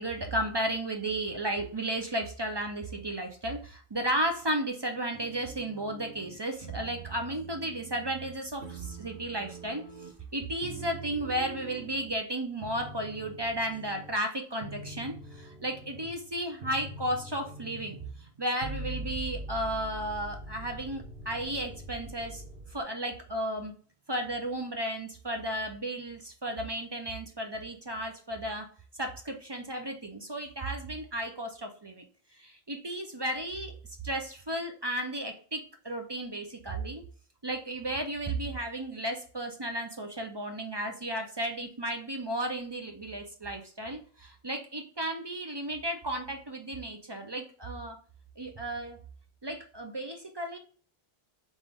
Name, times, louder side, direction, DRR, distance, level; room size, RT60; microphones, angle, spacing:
voice 1, 0.0-9.8 10.3-22.4 22.7-23.7 24.1-28.7 28.9-32.0 32.3-33.7 34.0-37.0 37.4-48.0 48.4-49.0 49.4-50.6, right 1 dB, 30° right, 4 dB, 0.5 m, -34 dB
sound 1, 5.1-6.4 6.6-8.4 8.6-10.3 10.6-12.2 12.6-14.2 14.6-22.8, right 2 dB, 60° right, 1.4 m, -43 dB
3.9 x 3.6 x 3.4 m, 0.43 s
omnidirectional pair, 1.1 m